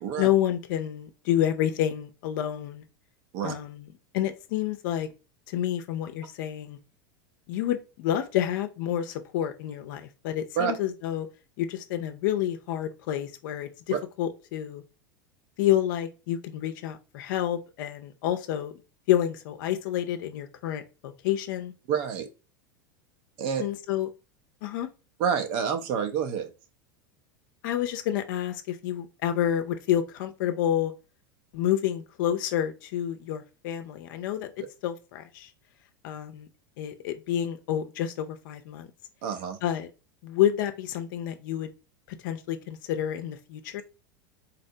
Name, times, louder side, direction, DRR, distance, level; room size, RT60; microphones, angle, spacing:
voice 1, 0.2-2.8 3.4-3.9 4.1-5.1 5.5-6.8 7.5-11.3 11.6-14.8 15.6-18.7 19.1-21.7 23.6-24.1 24.6-24.9 27.6-30.9 31.5-34.5 34.8-35.5 36.0-36.5 36.8-38.9 39.6-39.9 40.2-41.7 42.2-43.8, left 11 dB, 65° left, 0.5 m, -29 dB
voice 2, 21.9-22.3 23.4-23.7 25.2-26.5 39.2-39.6, right 7 dB, 55° right, 0.7 m, -28 dB
4.1 x 2.1 x 2.7 m
hypercardioid pair, 95°, 11 cm